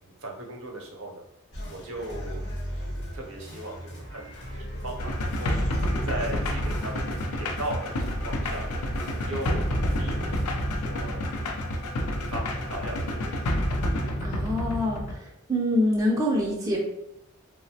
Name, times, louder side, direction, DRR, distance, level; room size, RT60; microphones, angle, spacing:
voice 1, 0.0-1.2 1.7-2.7 3.1-4.3 4.7-5.5 6.0-7.1 7.4-8.7 9.2-11.5 12.1-13.3, right 1 dB, 65° right, 1 dB, 0.6 m, -37 dB
sound 1, 1.5-10.8, equal, 50° left, 0.7 m, -37 dB
sound 2, 5.0-15.2, left 1 dB, 85° left, 0.4 m, -29 dB
voice 2, 14.2-15.2 15.5-16.8, left 1 dB, 15° right, -3 dB, 0.3 m, -25 dB
3.0 x 2.0 x 2.6 m, 0.81 s
head